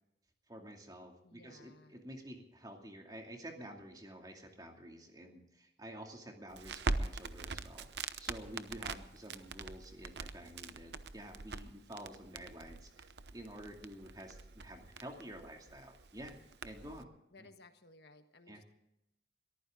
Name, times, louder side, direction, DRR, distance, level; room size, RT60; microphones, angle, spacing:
voice 1, 0.5-13.1 13.3-16.4 16.6-17.1 17.4-17.5 18.5-18.6, right 1 dB, 20° right, 2 dB, 2.6 m, -50 dB
voice 2, 1.2-2.0 17.3-18.6, left 2 dB, 65° left, 7 dB, 1.5 m, -59 dB
Crackle, 6.5-17.0, right 3 dB, 70° right, 0.8 m, -43 dB
22.5 x 14.5 x 3.8 m, 0.85 s
head